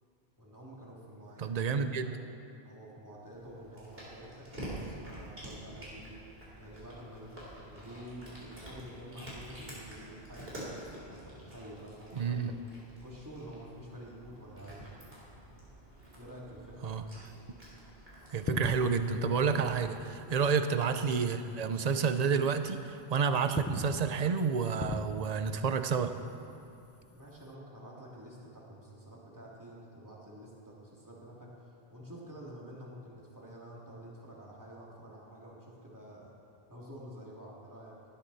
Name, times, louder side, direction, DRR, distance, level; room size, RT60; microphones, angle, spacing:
voice 1, 0.4-2.2 2.6-6.2 6.6-10.5 11.1-12.6 13.0-15.0 16.1-17.0 27.1-31.5 31.9-36.3 36.7-38.0, equal, 15° right, -5 dB, 2.7 m, -49 dB
voice 2, 1.4-2.1 12.1-12.5 16.8-17.0 18.3-26.1, right 5 dB, 45° right, 9 dB, 0.7 m, -30 dB
Cat, 3.3-20.4, right 1 dB, 65° right, 4.2 m, -48 dB
sound 1, 18.2-21.2 21.5-21.7 22.2-23.0 23.3-27.5, left 3 dB, 20° left, 0.4 m, -41 dB
18.0 x 12.5 x 4.2 m, 2.7 s
omnidirectional pair, 1.1 m